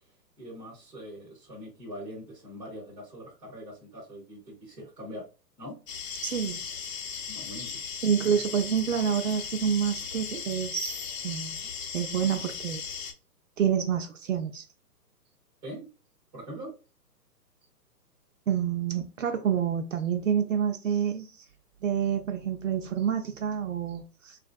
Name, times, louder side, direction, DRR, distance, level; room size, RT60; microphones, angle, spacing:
voice 1, 0.4-5.2 5.6-5.8 7.3-7.7 15.6-15.9 16.3-16.7, equal, 5° right, 0.5 m, -42 dB
sound 1, 5.9-13.1, left 6 dB, 55° left, 0.8 m, -37 dB
voice 2, 6.2-6.6 8.0-11.0 11.2-11.6 11.9-12.8 13.6-14.6 18.5-21.3 21.8-24.4, right 8 dB, 55° right, 0.5 m, -28 dB
3.0 x 2.5 x 2.4 m
hypercardioid pair, 140°, 49 cm